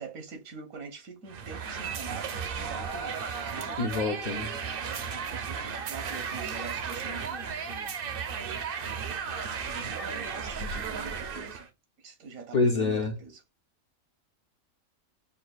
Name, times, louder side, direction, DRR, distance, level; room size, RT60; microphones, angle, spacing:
voice 1, 0.0-3.8 4.8-8.7 9.0-11.7 12.0-13.4, right 4 dB, 80° right, 1.5 m, -45 dB
sound 1, 1.3-11.7, right 6 dB, 55° right, 0.6 m, -35 dB
voice 2, 3.8-4.5 12.5-13.2, left 3 dB, 50° left, 0.6 m, -26 dB
6.5 x 2.3 x 2.3 m
omnidirectional pair, 1.4 m